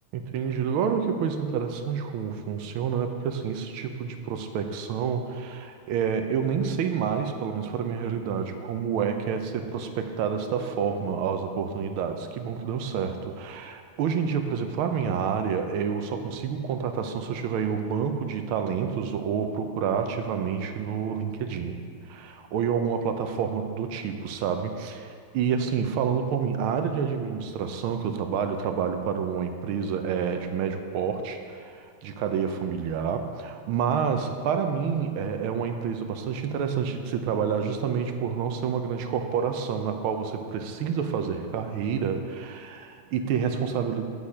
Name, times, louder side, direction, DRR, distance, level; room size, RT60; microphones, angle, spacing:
voice 1, 0.1-21.8 22.1-44.1, right 7 dB, 80° right, 6 dB, 1.5 m, -28 dB
8.4 x 7.3 x 4.8 m, 2.3 s
omnidirectional pair, 2.4 m